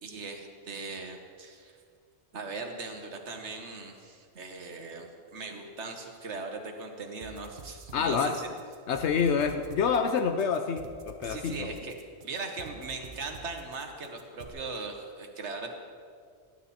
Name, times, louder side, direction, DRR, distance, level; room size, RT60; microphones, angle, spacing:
voice 1, 0.0-1.7 2.3-8.5 11.2-11.9 12.2-15.7, right 3 dB, 80° right, 4 dB, 1.4 m, -39 dB
sound 1, 7.2-14.5, right 4 dB, 50° right, 1.1 m, -48 dB
voice 2, 7.9-8.4 8.9-11.7, left 6 dB, 80° left, 7 dB, 1.0 m, -27 dB
18.5 x 10.5 x 4.2 m, 2.1 s
omnidirectional pair, 1.2 m